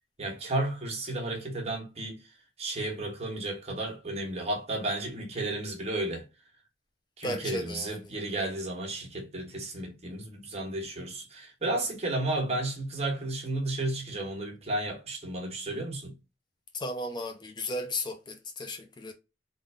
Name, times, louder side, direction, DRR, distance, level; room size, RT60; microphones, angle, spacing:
voice 1, 0.2-2.2 2.6-6.3 7.2-16.1, right 2 dB, 35° right, 1.4 m, -33 dB
voice 2, 7.2-8.1 16.7-19.1, left 1 dB, 25° left, 0.5 m, -35 dB
3.8 x 2.6 x 3.3 m
head